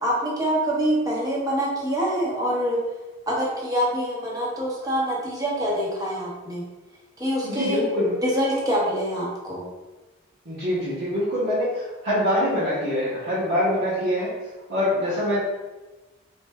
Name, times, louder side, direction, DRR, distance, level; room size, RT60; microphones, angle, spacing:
voice 1, 0.0-2.8 3.3-6.6 7.2-7.8 8.2-9.6, equal, 20° right, -5 dB, 0.9 m, -25 dB
voice 2, 7.4-8.1 10.4-14.3 14.7-15.4, left 1 dB, 55° right, -10 dB, 1.0 m, -24 dB
4.1 x 3.4 x 2.2 m, 1.1 s
head